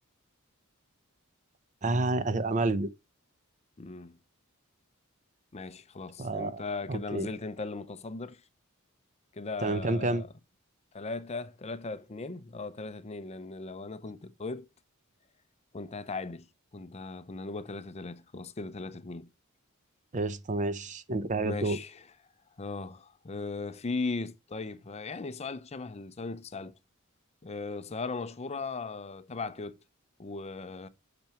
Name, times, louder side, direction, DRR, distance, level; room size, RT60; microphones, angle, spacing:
voice 1, 1.8-2.9 6.2-6.6 6.9-7.3 9.6-10.2 20.1-21.8, right 2 dB, 35° right, 0.6 m, -29 dB
voice 2, 3.8-4.2 5.5-8.4 9.3-10.3 10.9-14.7 15.7-16.5 16.7-19.3 21.4-22.1 22.6-26.7 27.4-29.8 30.2-30.9, left 3 dB, 30° left, 0.6 m, -38 dB
8.7 x 5.9 x 2.9 m
head